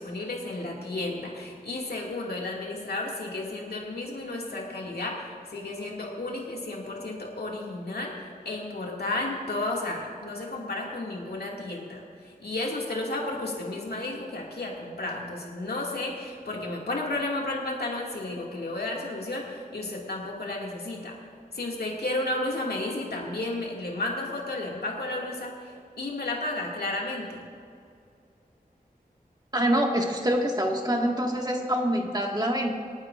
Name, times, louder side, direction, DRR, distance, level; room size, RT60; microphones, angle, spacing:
voice 1, 0.0-21.2 21.5-27.5, left 2 dB, 85° left, -2 dB, 2.3 m, -33 dB
voice 2, 29.5-32.7, equal, 25° right, 0 dB, 1.9 m, -25 dB
26.5 x 9.5 x 2.6 m, 2.4 s
wide cardioid pair, 70°, 16 cm